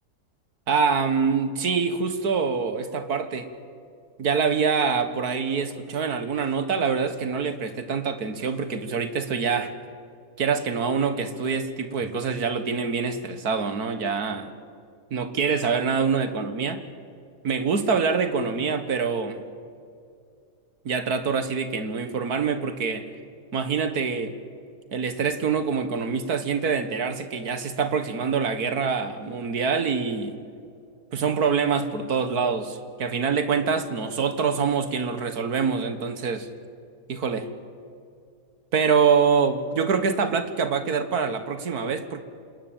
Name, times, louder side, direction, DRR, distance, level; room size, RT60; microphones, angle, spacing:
voice 1, 0.7-3.5 4.2-9.7 10.4-14.5 15.1-16.8 17.4-19.4 20.9-23.1 23.5-24.3 24.9-30.4 31.1-36.5 37.1-37.5 38.7-42.2, right 5 dB, 65° right, 10 dB, 1.9 m, -25 dB
27.0 x 20.0 x 9.0 m, 2.4 s
omnidirectional pair, 1.8 m